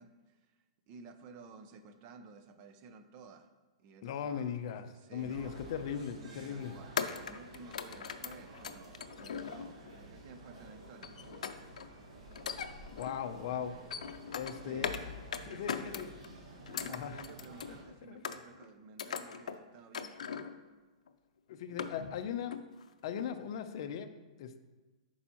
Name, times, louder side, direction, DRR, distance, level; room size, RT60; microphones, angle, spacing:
voice 1, 0.0-3.5 3.8-5.6 6.4-11.7 14.6-15.0 15.4-16.1 16.7-20.4, right 4 dB, 30° right, 8 dB, 0.5 m, -54 dB
voice 2, 4.0-6.8 12.9-13.7 14.3-14.9 15.4-16.1 16.9-17.2 17.7-17.8 18.1-18.2 21.5-22.6 23.0-24.1 24.4-24.7, left 8 dB, 50° left, 8 dB, 0.6 m, -38 dB
sound 1, 5.2-17.8, right 1 dB, 70° right, 1.7 m, -51 dB
sound 2, 5.5-5.7 7.0-9.9 11.0-11.9 12.3-13.2 13.6-15.0 15.3-16.3 16.7-17.8 18.2-18.7 19.0-19.6 19.9-20.6 21.1-21.2 21.5-22.2 22.5-22.8 23.2-23.3, left 7 dB, 90° left, 0.5 m, -40 dB
11.0 x 4.6 x 3.0 m, 1.2 s
hypercardioid pair, 160°, 4 cm